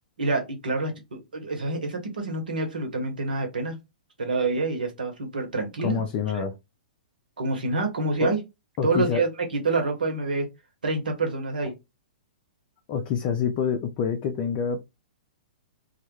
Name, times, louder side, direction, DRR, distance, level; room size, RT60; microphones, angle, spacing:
voice 1, 0.2-3.8 4.2-6.0 6.3-6.4 7.4-8.4 8.8-10.5 10.8-11.7, right 3 dB, 80° right, 0.9 m, -27 dB
voice 2, 5.8-6.5 8.2-8.3 8.8-9.2 12.9-14.8, left 6 dB, 40° left, 0.4 m, -26 dB
2.2 x 2.1 x 3.0 m
hypercardioid pair, 115°, 5 cm